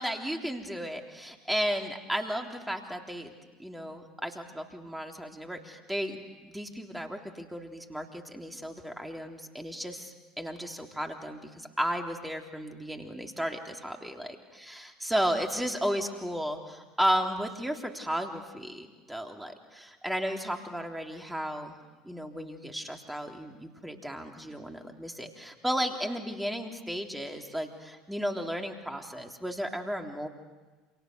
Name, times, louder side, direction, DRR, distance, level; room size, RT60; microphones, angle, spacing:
voice 1, 0.0-3.3 3.6-21.7 22.0-30.3, equal, 5° right, 3 dB, 3.4 m, -34 dB
28.5 x 27.5 x 6.8 m, 1.3 s
hypercardioid pair, 70°, 0 cm